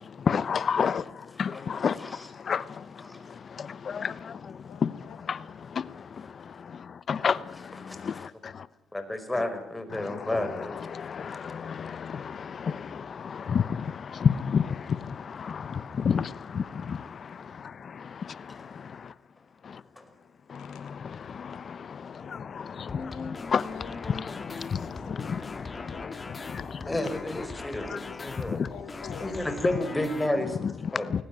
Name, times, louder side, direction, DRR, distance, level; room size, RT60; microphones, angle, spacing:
voice 1, 0.2-1.1 1.4-2.9 3.2-4.9 5.3-8.7 9.9-10.4 10.9-19.1 19.6-19.8 20.5-25.4 25.8-26.1 26.5-26.9 27.9-28.0 28.4-28.6 30.6-30.7 31.1-31.2, left 6 dB, 50° left, 1.0 m, -32 dB
voice 2, 1.3-2.5 3.0-3.2 7.8-8.3 8.9-10.7 18.5-18.6 20.0-20.1 26.8-28.6 29.2-30.5 30.9-31.1, left 1 dB, 10° left, 5.2 m, -32 dB
voice 3, 4.7-5.5 20.6-21.0 23.0-26.5 28.5-31.2, left 8 dB, 85° left, 4.9 m, -49 dB
sound 1, 22.9-30.3, left 3 dB, 30° left, 2.4 m, -39 dB
21.0 x 19.5 x 9.2 m
cardioid pair, 90°, 0 cm